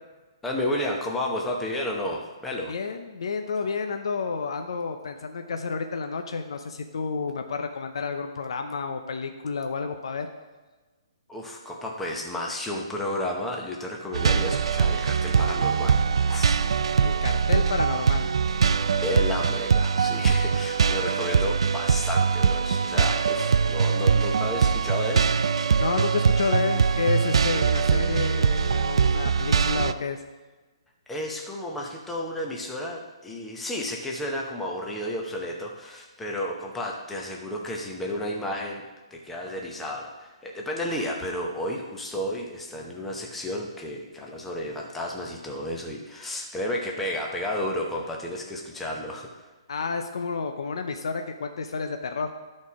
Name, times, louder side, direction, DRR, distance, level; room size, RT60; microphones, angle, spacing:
voice 1, 0.4-2.7 11.3-16.0 16.3-16.6 19.0-25.2 31.1-38.9 39.1-49.3, left 1 dB, 5° left, -1 dB, 0.8 m, -32 dB
voice 2, 2.7-10.3 17.0-18.3 25.8-30.2 49.7-52.3, left 5 dB, 65° left, 6 dB, 0.6 m, -30 dB
sound 1, 14.1-29.9, right 6 dB, 75° right, 0.4 m, -22 dB
12.0 x 4.3 x 4.8 m, 1.3 s
hypercardioid pair, 175°, 3 cm